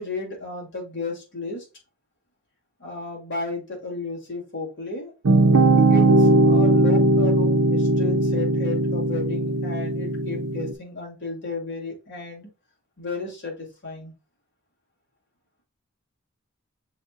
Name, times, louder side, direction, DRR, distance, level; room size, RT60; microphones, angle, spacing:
voice 1, 0.0-1.7 2.8-5.1 5.9-12.5 13.0-14.1, left 3 dB, 60° left, -2 dB, 2.2 m, -33 dB
sound 1, 5.2-10.7, right 2 dB, 85° right, 0.6 m, -19 dB
7.0 x 2.9 x 2.4 m, 0.29 s
head